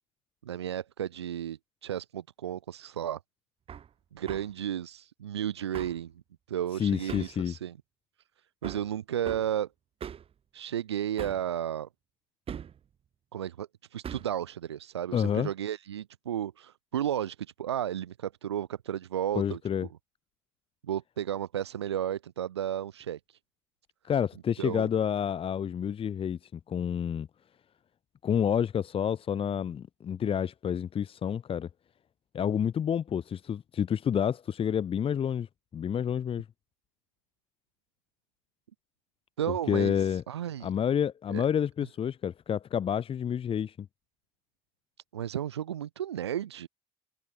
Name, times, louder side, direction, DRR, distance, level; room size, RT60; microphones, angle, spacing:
voice 1, 0.4-3.2 4.1-6.1 6.5-7.8 8.6-9.7 10.5-11.9 13.3-19.6 20.8-23.4 24.6-24.9 39.4-40.7 41.3-41.4 45.1-46.7, right 10 dB, 90° right, 1.7 m, -33 dB
Hammer, 3.7-3.9 4.3-4.5 5.7-6.0 7.1-7.4 8.6-8.9 9.3-9.5 10.0-10.3 11.2-11.5 12.5-12.8 14.0-14.4, right 8 dB, 45° right, 4.0 m, -40 dB
voice 2, 6.7-7.5 15.1-15.5 19.3-19.9 24.0-27.3 28.2-31.7 32.3-35.5 35.7-36.4 39.7-40.2 40.6-43.9, left 8 dB, 45° left, 2.5 m, -29 dB
hypercardioid pair, 65°, 14 cm